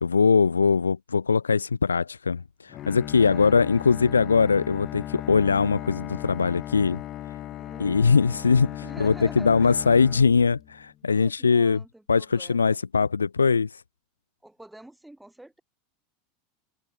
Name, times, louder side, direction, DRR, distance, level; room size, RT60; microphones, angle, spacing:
voice 1, 0.0-7.0 7.8-8.7 9.0-11.8 12.1-13.8, left 5 dB, 85° left, 0.5 m, -21 dB
Bowed string instrument, 2.7-10.9, left 13 dB, 40° left, 2.2 m, -37 dB
voice 2, 3.2-3.6 7.6-8.5 8.8-9.8 11.1-12.8 14.4-15.6, right 1 dB, 5° right, 5.1 m, -46 dB
open air
hypercardioid pair, 85°, 0 cm